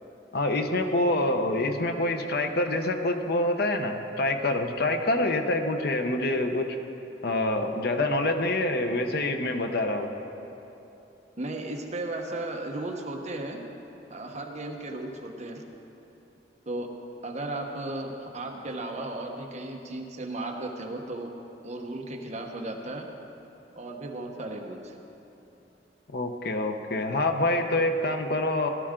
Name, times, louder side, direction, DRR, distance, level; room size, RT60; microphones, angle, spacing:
voice 1, 0.3-6.8 7.2-10.1 26.1-28.7, left 2 dB, 60° left, 6 dB, 0.8 m, -26 dB
voice 2, 11.4-13.6 14.1-15.6 16.7-16.9 17.2-21.3 21.6-23.1 23.8-25.0, right 2 dB, 40° right, 2 dB, 1.1 m, -35 dB
17.0 x 12.5 x 3.8 m, 2.9 s
head